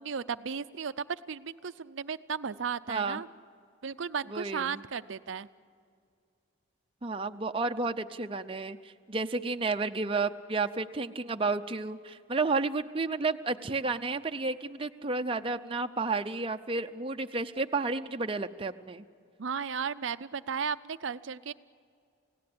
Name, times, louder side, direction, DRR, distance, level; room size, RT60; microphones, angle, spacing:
voice 1, 0.0-3.3 3.8-5.5 19.4-21.5, right 6 dB, 70° right, 12 dB, 0.5 m, -35 dB
voice 2, 2.9-3.2 4.3-4.8 7.0-8.8 9.1-19.0, right 3 dB, 25° right, 7 dB, 0.6 m, -31 dB
29.0 x 17.5 x 8.7 m, 2.3 s
head